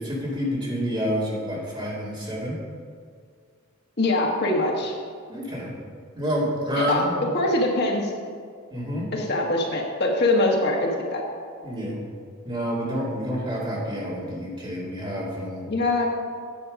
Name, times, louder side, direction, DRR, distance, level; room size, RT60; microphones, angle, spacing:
voice 1, 0.0-2.6 5.3-5.7 6.2-7.2 8.7-9.1 11.6-12.0 12.4-15.7, equal, 25° right, -6 dB, 2.6 m, -28 dB
voice 2, 4.0-4.9 6.7-7.0 7.3-8.1 9.1-11.2 15.7-16.1, left 2 dB, 50° left, 0 dB, 1.4 m, -23 dB
10.0 x 7.6 x 5.2 m, 2.1 s
head